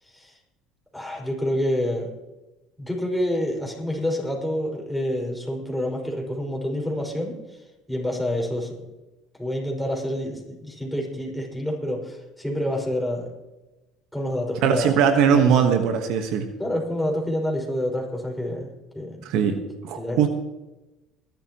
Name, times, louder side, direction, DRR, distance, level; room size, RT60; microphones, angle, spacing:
voice 1, 0.0-0.4 0.9-2.1 2.8-8.8 9.4-13.3 14.1-15.5 16.6-19.3 20.0-20.3, left 1 dB, ahead, -2 dB, 5.5 m, -28 dB
voice 2, 14.6-16.5 19.2-19.6 19.8-20.3, right 7 dB, 70° right, 7 dB, 1.3 m, -20 dB
21.5 x 12.0 x 3.0 m, 1.0 s
supercardioid pair, 85°, 0 cm